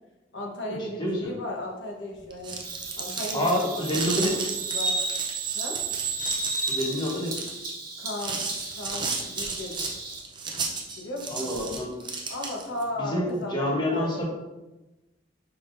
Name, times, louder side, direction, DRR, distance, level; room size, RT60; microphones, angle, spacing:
voice 1, 0.3-2.6 2.9-3.9 4.2-4.4 4.7-5.0 5.5-5.8 8.0-8.4 8.7-9.8 11.0-11.5 12.3-14.1, left 1 dB, 80° left, -1 dB, 1.1 m, -35 dB
voice 2, 1.0-1.3 3.3-4.3 6.6-7.3 11.3-11.9 13.0-14.3, equal, 25° left, -2 dB, 1.0 m, -27 dB
sound 1, 2.2-12.8, right 4 dB, 25° right, 0.6 m, -34 dB
Bird vocalization bird call bird song, 2.6-10.2, right 3 dB, 50° right, 1.2 m, -33 dB
5.7 x 3.6 x 2.6 m, 1.0 s
head